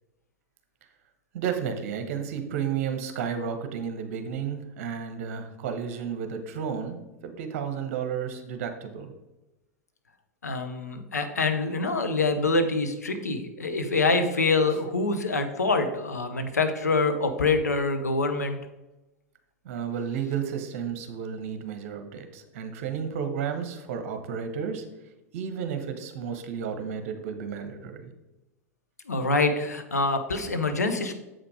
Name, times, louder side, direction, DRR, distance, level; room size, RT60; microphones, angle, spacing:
voice 1, 1.3-7.0 7.2-9.1 19.6-24.8 25.3-28.1, right 7 dB, 55° right, 7 dB, 1.1 m, -32 dB
voice 2, 10.4-18.6 29.1-31.1, left 3 dB, 85° left, 7 dB, 0.9 m, -25 dB
7.5 x 5.1 x 4.8 m, 1.0 s
figure-of-eight pair, 95°, 9 cm